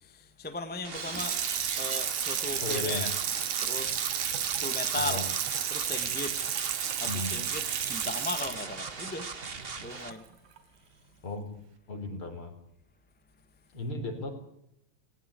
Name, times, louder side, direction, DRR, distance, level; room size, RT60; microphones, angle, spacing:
voice 1, 0.0-1.4 1.8-3.1 3.6-4.1 4.6-5.3 5.7-6.4 7.0-9.3 9.8-10.2, left 3 dB, 5° left, 1.0 m, -37 dB
sound 1, 0.8-10.1, right 4 dB, 35° right, 1.0 m, -39 dB
Water tap faucet / Sink (filling or washing), 1.0-10.2 10.6-10.7, right 9 dB, 85° right, 3.2 m, -32 dB
voice 2, 2.6-3.1 4.9-5.2 7.0-7.3 11.2-11.5 11.9-12.6 13.7-14.3, left 3 dB, 45° left, 4.6 m, -35 dB
19.5 x 19.0 x 8.5 m
omnidirectional pair, 3.4 m